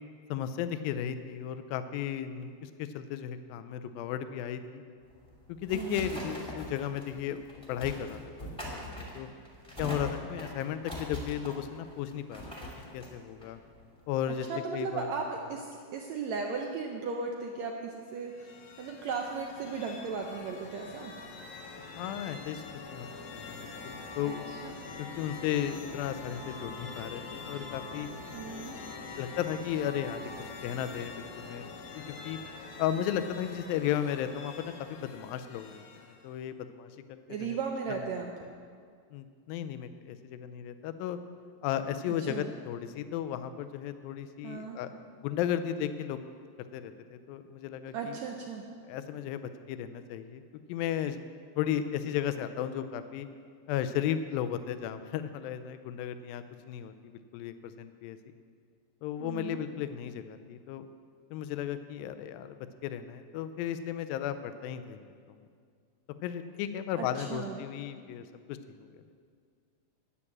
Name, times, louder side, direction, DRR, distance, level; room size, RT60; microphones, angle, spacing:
voice 1, 0.3-4.8 5.5-8.6 9.1-9.3 9.8-13.6 14.1-14.5 14.7-15.1 22.0-22.6 22.9-23.1 23.3-24.4 25.0-28.1 29.2-31.7 31.9-32.4 32.8-37.6 37.9-38.0 39.1-41.2 41.6-44.9 45.2-46.2 46.7-48.2 48.9-50.4 50.7-51.2 51.6-53.3 53.7-56.9 57.3-58.2 59.0-60.9 61.3-65.0 66.2-68.9, left 10 dB, 85° left, 10 dB, 2.4 m, -35 dB
sound 1, 5.1-14.3, left 1 dB, ahead, 1.8 m, -42 dB
voice 2, 5.7-6.1 14.5-21.1 24.2-24.7 28.3-28.7 37.3-38.3 42.1-42.4 44.4-44.8 47.9-48.6 59.2-59.6 67.0-67.6, right 5 dB, 80° right, 1 dB, 1.5 m, -36 dB
sound 2, 18.2-36.4, left 3 dB, 65° left, 2.1 m, -44 dB
9.9 x 9.7 x 7.2 m, 2.1 s
omnidirectional pair, 4.1 m